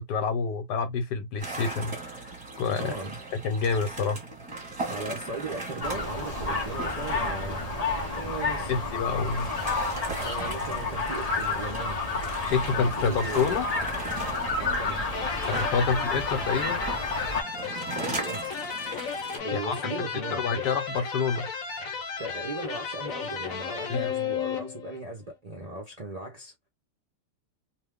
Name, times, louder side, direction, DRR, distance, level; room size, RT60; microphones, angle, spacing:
voice 1, 0.0-2.2 2.6-3.0 3.3-4.2 8.7-9.5 12.5-13.7 15.5-16.8 19.5-21.5 23.9-24.1, left 5 dB, 80° left, 1.4 m, -28 dB
sound 1, 1.4-19.4, right 2 dB, 20° right, 1.3 m, -39 dB
voice 2, 2.8-3.2 4.9-7.6 8.1-8.8 10.2-12.0 12.7-13.6 14.5-15.0 17.9-18.5 19.4-20.7 22.2-26.7, right 3 dB, 45° right, 0.5 m, -37 dB
sound 2, 5.8-17.4, left 3 dB, 40° left, 0.5 m, -30 dB
sound 3, 15.1-25.0, left 6 dB, 60° left, 1.1 m, -34 dB
2.8 x 2.3 x 3.5 m
omnidirectional pair, 1.8 m